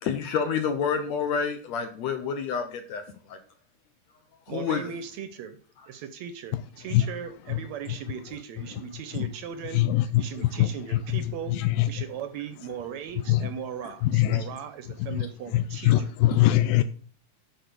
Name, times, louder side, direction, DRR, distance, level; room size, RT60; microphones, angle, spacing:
voice 1, 0.0-3.4 4.5-4.9, left 6 dB, 70° left, 7 dB, 1.7 m, -29 dB
voice 2, 4.5-5.6 5.9-11.6 11.9-15.9, right 8 dB, 80° right, 10 dB, 1.6 m, -38 dB
voice 3, 9.7-11.9 13.3-13.5 14.0-14.4 15.0-15.3 15.5-16.8, left 14 dB, 90° left, 12 dB, 2.4 m, -23 dB
11.5 x 4.6 x 6.8 m, 0.44 s
omnidirectional pair, 4.1 m